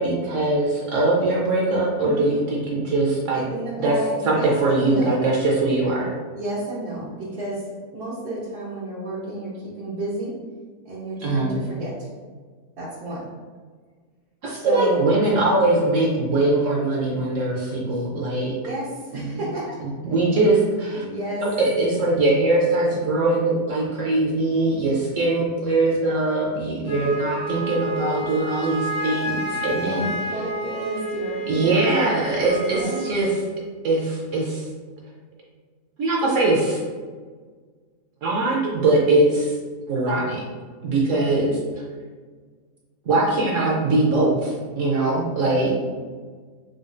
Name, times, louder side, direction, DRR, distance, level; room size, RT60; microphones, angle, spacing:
voice 1, 0.0-3.4 3.8-4.0 4.2-6.1 11.2-11.6 14.4-18.5 19.1-19.4 19.8-21.0 21.4-30.1 31.5-33.3 33.8-34.7 36.0-36.8 38.2-39.5 39.9-40.4 40.8-41.6 43.1-45.7, right 2 dB, 65° right, -3 dB, 0.9 m, -21 dB
voice 2, 2.0-2.4 3.3-5.2 6.3-7.7 7.9-10.3 10.8-12.1 12.8-13.3 14.5-15.1 17.9-18.0 18.6-19.8 20.9-21.4 29.7-31.9 32.7-33.0 45.5-45.9, right 1 dB, 85° right, -10 dB, 1.5 m, -31 dB
Wind instrument woodwind instrument, 26.8-33.1, right 1 dB, 85° left, 1.2 m, -30 dB
5.0 x 2.3 x 2.5 m, 1.5 s
omnidirectional pair, 1.6 m